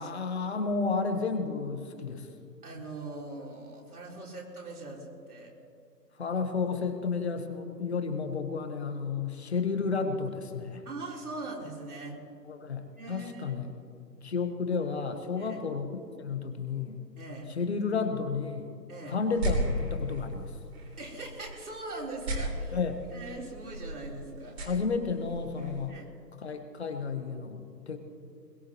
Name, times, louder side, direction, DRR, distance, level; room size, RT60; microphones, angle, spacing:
voice 1, 0.0-2.3 6.2-10.8 12.5-13.7 14.2-15.9 16.2-17.0 17.5-18.8 19.1-20.5 22.7-22.9 24.6-26.0 26.4-28.0, left 5 dB, 40° left, 6 dB, 1.5 m, -32 dB
voice 2, 2.6-5.5 10.8-12.2 13.0-13.6 15.4-15.6 17.2-17.5 18.9-19.2 21.0-22.8 23.1-24.6 25.9-26.0, right 2 dB, 60° right, -2 dB, 4.4 m, -41 dB
sound 1, 19.2-25.9, equal, 40° right, 3.5 m, -36 dB
21.5 x 20.0 x 3.2 m, 2.3 s
figure-of-eight pair, 155°, 50 cm